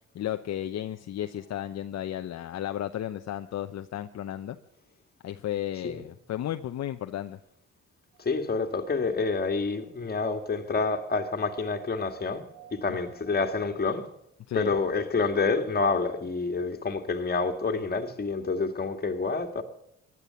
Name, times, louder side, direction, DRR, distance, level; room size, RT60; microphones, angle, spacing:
voice 1, 0.1-4.6 5.2-7.4 14.5-14.7, left 11 dB, 60° left, 0.8 m, -33 dB
sound 1, 8.1-13.7, right 8 dB, 25° right, 6.9 m, -54 dB
voice 2, 8.2-12.4 12.7-14.1 14.5-19.6, left 4 dB, 30° left, 2.2 m, -28 dB
16.0 x 11.0 x 7.0 m
cardioid pair, 90°, 30 cm